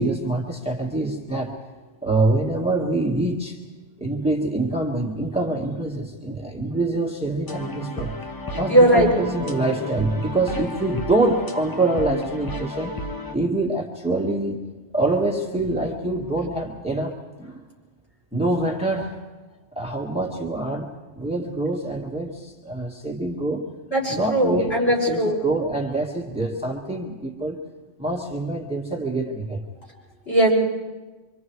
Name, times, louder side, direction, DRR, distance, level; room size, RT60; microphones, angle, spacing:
voice 1, 0.0-1.5 2.0-3.6 4.0-8.1 8.6-13.0 13.3-14.6 14.9-17.6 18.3-19.2 19.8-23.7 24.1-24.8 25.1-27.6 28.0-29.6, right 2 dB, 5° right, 0 dB, 1.9 m, -25 dB
sound 1, 7.5-13.4, left 1 dB, 20° left, 0.9 m, -33 dB
voice 2, 8.7-9.1 23.9-25.4 30.2-30.5, right 1 dB, 60° left, -4 dB, 6.8 m, -18 dB
26.0 x 25.5 x 4.8 m, 1.3 s
omnidirectional pair, 1.2 m